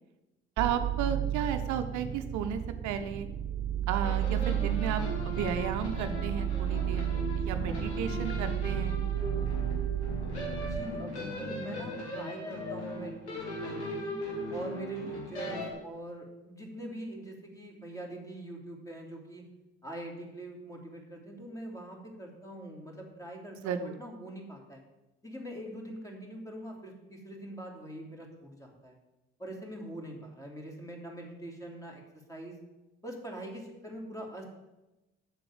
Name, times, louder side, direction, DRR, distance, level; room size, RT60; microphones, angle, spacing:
sound 1, 0.6-10.8, right 10 dB, 30° right, 1.1 m, -32 dB
voice 1, 0.6-3.3 3.9-7.1 7.4-9.0 23.6-24.0, right 8 dB, 60° right, 8 dB, 0.8 m, -34 dB
sound 2, 4.0-15.7, left 1 dB, 85° left, 2.0 m, -38 dB
voice 2, 10.6-14.1 14.5-19.4 19.8-24.8 25.2-29.0 29.4-32.6 33.0-34.4, right 1 dB, 10° left, 0 dB, 3.1 m, -43 dB
7.7 x 6.7 x 7.4 m, 1.0 s
hypercardioid pair, 50°, 33 cm